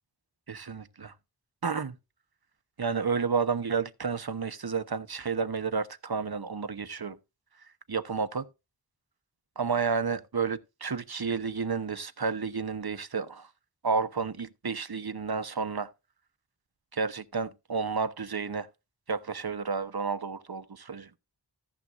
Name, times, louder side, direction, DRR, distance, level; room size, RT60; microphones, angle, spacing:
voice 1, 0.5-1.1 1.6-1.9 2.8-7.2 7.9-8.5 9.6-13.5 13.8-15.9 16.9-18.7 19.1-21.1, right 5 dB, 65° right, 1.1 m, -31 dB
14.5 x 7.4 x 2.6 m
wide cardioid pair, 40°, 41 cm